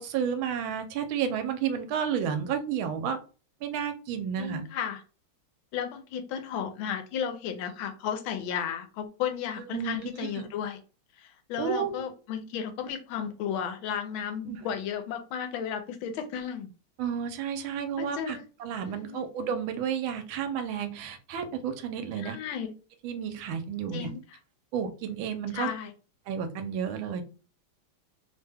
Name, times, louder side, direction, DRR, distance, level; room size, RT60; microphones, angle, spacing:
voice 1, 0.0-3.2 3.6-4.6 9.7-10.4 11.6-11.9 14.5-14.6 17.0-22.4 23.0-24.1 24.7-25.7 26.3-27.2, right 7 dB, 80° right, 7 dB, 1.4 m, -31 dB
voice 2, 4.4-5.0 5.7-10.8 11.2-16.7 18.0-18.5 18.9-19.2 22.2-22.7 23.9-24.2 25.5-25.9, left 8 dB, 85° left, 7 dB, 1.4 m, -34 dB
3.4 x 2.2 x 3.3 m, 0.36 s
omnidirectional pair, 2.2 m